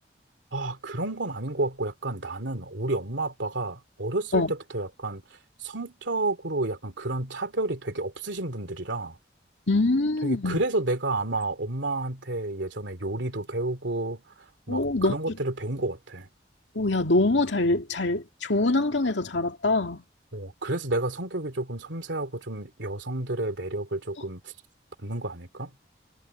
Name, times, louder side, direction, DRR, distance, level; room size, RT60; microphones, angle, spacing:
voice 1, 0.5-5.2 5.6-9.2 10.2-14.2 14.7-16.3 20.3-24.5 25.0-25.7, right 2 dB, 85° right, 2.8 m, -30 dB
voice 2, 9.7-10.6 14.7-15.2 16.8-20.0, left 2 dB, 80° left, 2.3 m, -24 dB
head